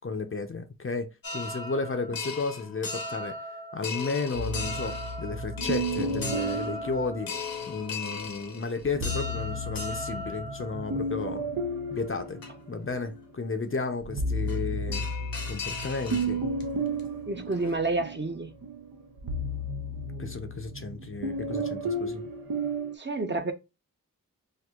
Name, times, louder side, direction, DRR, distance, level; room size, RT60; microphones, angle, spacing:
voice 1, 0.0-3.4 3.7-7.3 7.7-11.4 11.9-12.4 12.7-15.1 15.5-16.4 20.2-22.2, left 4 dB, 40° left, 0.5 m, -33 dB
sound 1, 1.2-11.3 12.0-12.1 12.4-12.5 14.5-14.6 14.9-16.6 17.0-17.1 17.4-17.8, left 3 dB, 80° left, 0.9 m, -37 dB
sound 2, 4.3-7.8 8.8-13.2 13.7-22.9, right 1 dB, 85° right, 0.6 m, -33 dB
voice 2, 17.3-18.5 22.9-23.5, right 3 dB, 35° right, 0.6 m, -29 dB
4.5 x 2.6 x 2.3 m
wide cardioid pair, 60°, 34 cm